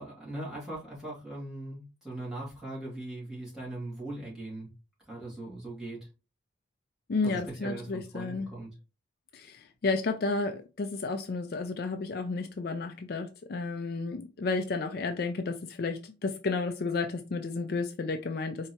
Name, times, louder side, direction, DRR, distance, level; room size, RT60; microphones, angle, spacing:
voice 1, 0.0-4.7 5.1-6.0 7.2-8.7, right 1 dB, 5° right, 1.9 m, -40 dB
voice 2, 7.1-8.5 9.3-18.7, left 3 dB, 50° left, 0.4 m, -32 dB
4.4 x 2.8 x 2.8 m
head